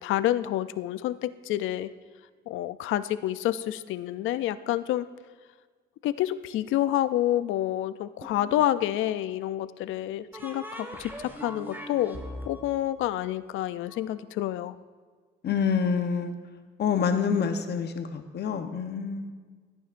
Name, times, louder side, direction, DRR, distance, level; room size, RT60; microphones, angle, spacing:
voice 1, 0.0-1.9 2.5-5.1 6.0-12.2 12.5-14.8, left 13 dB, 85° left, 15 dB, 0.4 m, -28 dB
sound 1, 8.2-9.0 10.3-14.0, equal, 10° right, 1.3 m, -41 dB
voice 2, 15.4-16.4 16.8-19.3, left 6 dB, 55° left, 7 dB, 0.9 m, -27 dB
14.0 x 8.9 x 2.5 m, 1.5 s
cardioid pair, 90°, 20 cm